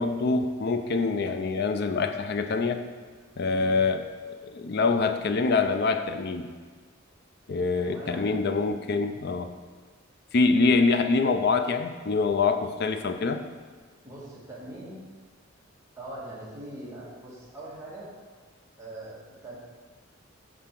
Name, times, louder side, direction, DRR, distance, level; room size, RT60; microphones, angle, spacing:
voice 1, 0.0-2.8 3.4-4.1 4.4-6.5 7.5-9.5 10.3-13.4, left 4 dB, 50° left, 7 dB, 0.4 m, -25 dB
voice 2, 7.7-8.8 14.0-15.0 16.0-18.1 18.8-19.6, right 1 dB, 15° right, -7 dB, 1.7 m, -42 dB
7.4 x 3.6 x 5.9 m, 1.4 s
head